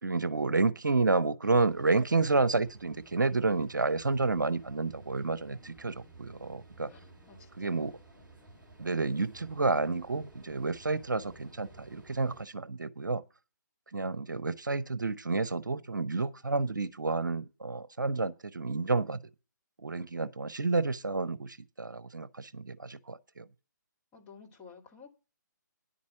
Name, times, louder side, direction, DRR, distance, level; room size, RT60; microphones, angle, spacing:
voice 1, 0.0-6.9 7.6-8.0 8.8-13.2 13.9-19.2 19.8-23.5, right 3 dB, 75° right, 0.9 m, -30 dB
sound 1, 1.5-12.5, right 2 dB, 10° right, 3.2 m, -55 dB
voice 2, 6.9-7.9 24.1-25.1, left 5 dB, 15° left, 2.4 m, -53 dB
10.5 x 8.4 x 5.8 m
figure-of-eight pair, 140°, 10 cm